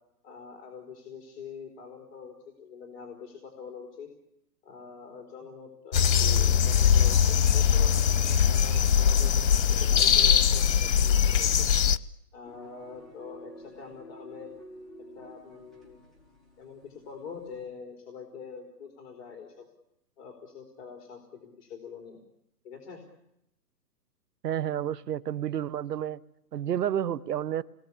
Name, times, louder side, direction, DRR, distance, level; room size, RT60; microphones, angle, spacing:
voice 1, 0.2-4.1 4.6-8.0 8.5-11.7 12.3-14.5 15.1-16.0 16.6-19.7 20.2-22.2 22.6-23.0, left 6 dB, 35° left, 4.0 m, -44 dB
sound 1, 5.9-12.0, left 8 dB, 90° left, 1.0 m, -22 dB
sound 2, 12.4-17.6, equal, ahead, 5.0 m, -50 dB
voice 2, 24.4-26.2 26.5-27.6, right 10 dB, 70° right, 1.2 m, -30 dB
29.0 x 20.5 x 8.6 m
hypercardioid pair, 150°, 50 cm